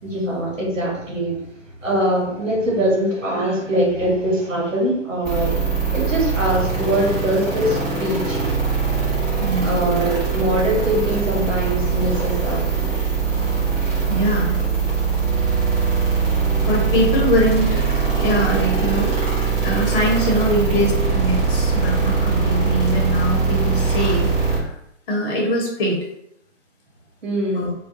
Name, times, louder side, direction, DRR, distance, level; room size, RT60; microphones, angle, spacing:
voice 1, 0.0-1.4 1.8-8.5 9.6-12.7 27.2-27.7, right 1 dB, 80° right, -3 dB, 1.1 m, -22 dB
sound 1, 5.3-24.6, right 5 dB, 30° right, 0.9 m, -21 dB
voice 2, 9.4-10.0 14.1-14.5 16.6-19.1 19.6-24.7 25.1-26.0 27.5-27.7, equal, 45° left, -2 dB, 0.8 m, -22 dB
2.2 x 2.2 x 2.5 m, 0.77 s
figure-of-eight pair, 120°, 37 cm